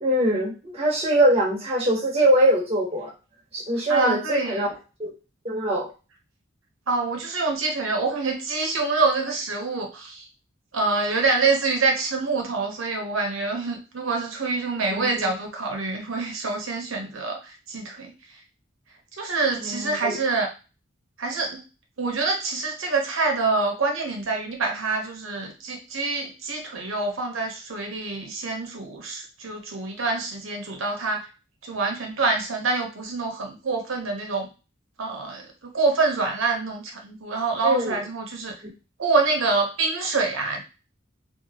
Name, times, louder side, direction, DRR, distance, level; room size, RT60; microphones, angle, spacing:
voice 1, 0.0-3.1 3.5-4.7 5.0-5.1 5.4-5.9 14.9-15.1 19.6-20.2 37.6-38.0, right 1 dB, 30° right, -3 dB, 0.9 m, -22 dB
voice 2, 3.9-4.7 6.9-10.3 10.7-18.1 19.2-20.5 21.2-21.6 22.0-31.3 31.6-34.5 35.0-38.6 39.0-40.6, right 3 dB, 90° right, 2 dB, 0.8 m, -26 dB
2.8 x 2.2 x 2.8 m, 0.31 s
head